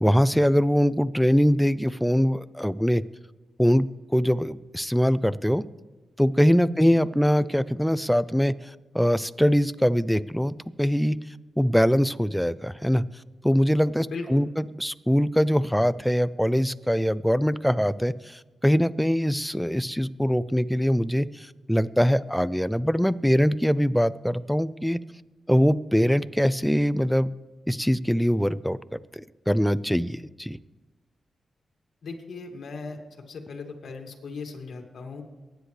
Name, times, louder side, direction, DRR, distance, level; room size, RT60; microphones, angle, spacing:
voice 1, 0.0-3.0 3.6-5.7 6.2-11.2 11.6-13.0 13.4-25.0 25.5-27.3 27.7-30.6, equal, ahead, 16 dB, 0.4 m, -23 dB
voice 2, 14.1-14.4 32.0-33.0 33.3-35.2, left 4 dB, 70° left, 2 dB, 2.1 m, -37 dB
23.5 x 10.0 x 3.3 m, 1.3 s
cardioid pair, 95°, 0 cm